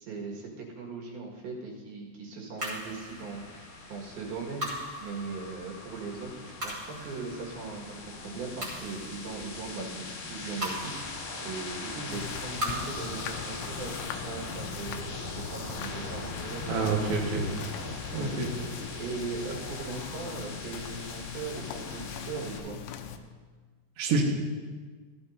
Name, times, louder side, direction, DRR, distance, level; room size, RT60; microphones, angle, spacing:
voice 1, 0.0-4.7 5.0-7.9 8.2-13.9 14.3-17.3 18.1-18.3 19.0-22.8, right 4 dB, 65° right, -1 dB, 3.4 m, -39 dB
sound 1, 2.6-22.6, left 3 dB, 60° left, 2.5 m, -41 dB
sound 2, 2.6-17.1, equal, 25° right, 2.5 m, -42 dB
sound 3, 12.1-23.2, left 9 dB, 85° left, 2.8 m, -42 dB
voice 2, 16.7-17.4 18.1-18.5 24.0-24.2, right 4 dB, 90° right, -1 dB, 1.2 m, -27 dB
15.5 x 13.0 x 2.7 m, 1.5 s
omnidirectional pair, 5.0 m